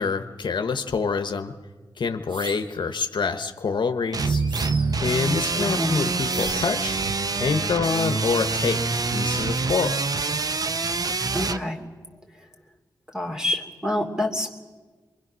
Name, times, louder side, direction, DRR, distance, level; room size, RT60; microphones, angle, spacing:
voice 1, 0.0-1.5 2.0-4.4 5.0-7.0 7.4-10.0, left 5 dB, 70° left, 7 dB, 1.0 m, -26 dB
sound 1, 2.3-2.8 4.2-5.1 6.3-6.9, right 3 dB, 70° right, 1.5 m, -37 dB
sound 2, 4.1-11.6, right 4 dB, 50° right, 0.7 m, -26 dB
voice 2, 5.6-6.0 11.3-11.8 13.1-14.6, left 1 dB, 10° right, 2 dB, 2.7 m, -27 dB
24.0 x 23.0 x 6.2 m, 1.4 s
cardioid pair, 65°, 8 cm